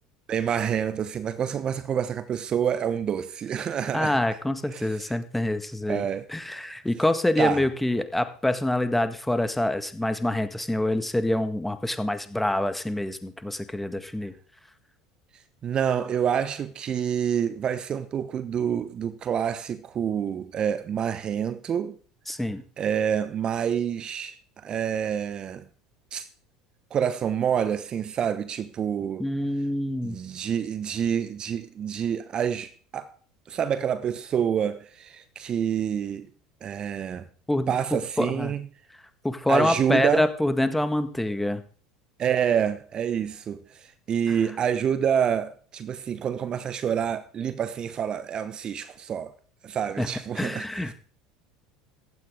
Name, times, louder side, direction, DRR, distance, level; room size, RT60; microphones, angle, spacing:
voice 1, 0.3-4.2 4.7-5.2 5.9-6.3 6.5-6.7 7.4-7.6 15.6-22.0 22.8-24.4 24.6-25.6 26.1-26.3 26.9-29.2 30.0-33.1 33.5-36.3 36.6-37.3 37.7-38.7 39.5-40.3 42.2-49.3 49.6-50.9, right 8 dB, 35° right, 1.0 m, -27 dB
voice 2, 3.9-14.3 22.3-22.6 29.2-30.2 37.5-37.7 38.2-38.5 39.2-41.6 44.3-44.4 50.0-50.9, left 1 dB, 5° left, 1.7 m, -26 dB
15.5 x 12.0 x 3.7 m
figure-of-eight pair, 70°, 2 cm